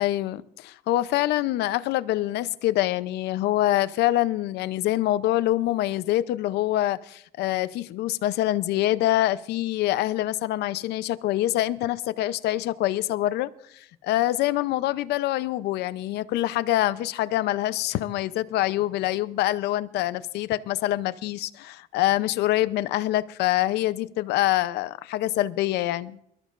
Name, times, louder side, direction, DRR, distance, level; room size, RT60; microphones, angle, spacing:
voice 1, 0.0-26.2, left 15 dB, 80° left, 0.6 m, -25 dB
23.0 x 13.5 x 2.5 m
cardioid pair, 110°, 17 cm